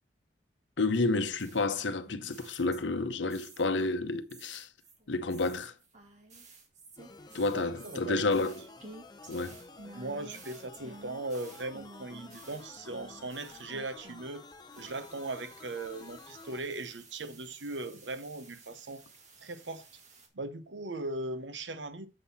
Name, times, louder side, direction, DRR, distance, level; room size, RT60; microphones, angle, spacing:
voice 1, 0.8-4.7 5.1-5.7 7.3-8.6 9.3-9.6, left 3 dB, 85° left, 0.8 m, -30 dB
sound 1, 1.4-3.9 4.3-14.4 14.7-20.3, right 3 dB, 40° right, 1.6 m, -53 dB
sound 2, 7.0-16.6, left 3 dB, 25° left, 0.6 m, -51 dB
voice 2, 7.5-8.5 9.9-14.4 14.7-19.0 19.4-19.8 20.3-22.1, right 2 dB, 80° right, 0.9 m, -39 dB
7.6 x 5.7 x 4.1 m
head